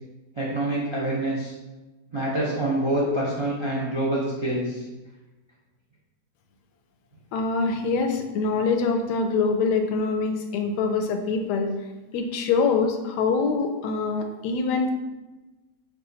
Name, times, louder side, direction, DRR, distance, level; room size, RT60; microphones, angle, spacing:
voice 1, 0.3-1.5 2.1-4.8, right 1 dB, 45° right, -6 dB, 0.3 m, -26 dB
voice 2, 7.3-11.7 12.1-14.9, left 4 dB, 80° left, 5 dB, 1.1 m, -24 dB
4.8 x 2.5 x 3.9 m, 1.1 s
omnidirectional pair, 1.8 m